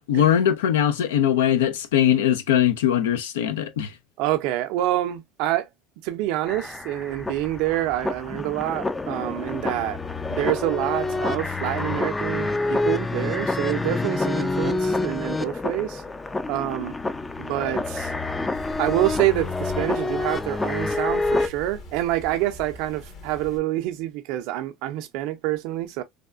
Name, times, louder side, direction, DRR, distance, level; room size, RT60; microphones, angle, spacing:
voice 1, 0.1-3.9, left 10 dB, 85° left, 0.5 m, -21 dB
voice 2, 4.2-5.7 6.0-10.0 10.3-16.0 16.5-16.9 17.4-18.1 18.8-26.0, right 14 dB, 70° right, 0.5 m, -27 dB
sound 1, 6.5-21.5, left 2 dB, 15° left, 0.4 m, -27 dB
sound 2, 18.5-23.6, left 3 dB, 55° left, 1.1 m, -42 dB
3.4 x 2.3 x 2.3 m
hypercardioid pair, 85°, 0 cm